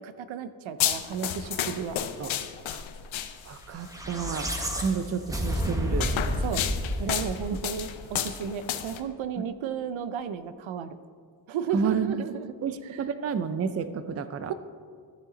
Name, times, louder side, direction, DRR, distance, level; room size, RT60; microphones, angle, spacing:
voice 1, 0.0-2.0 6.4-6.6 7.0-11.0 11.5-12.5 12.9-13.0, right 7 dB, 80° right, 12 dB, 0.6 m, -33 dB
sound 1, 0.8-3.7 4.7-4.9 5.5-9.0, left 10 dB, 80° left, 0.7 m, -32 dB
voice 2, 3.5-4.5 4.8-6.1 11.7-12.2 12.6-14.5, right 6 dB, 35° right, 12 dB, 0.5 m, -30 dB
sound 2, 3.8-8.2, equal, 5° right, 1.1 m, -31 dB
13.0 x 6.7 x 3.8 m, 2.1 s
wide cardioid pair, 105°, 46 cm